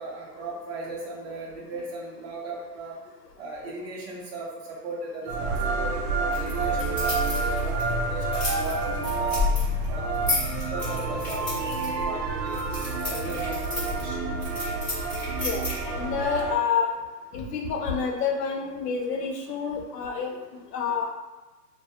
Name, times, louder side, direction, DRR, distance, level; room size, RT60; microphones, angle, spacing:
voice 1, 0.0-3.0 3.4-9.4 9.9-10.2 10.7-14.3, right 2 dB, 40° right, -4 dB, 0.7 m, -37 dB
sound 1, 5.3-16.6, right 3 dB, 80° right, 0.6 m, -29 dB
sound 2, 6.3-16.1, left 3 dB, 5° left, 0.5 m, -33 dB
voice 2, 15.4-16.9 17.3-20.4 20.7-21.1, left 6 dB, 70° left, 2 dB, 0.6 m, -28 dB
2.4 x 2.0 x 2.6 m, 1.1 s
hypercardioid pair, 135°, 49 cm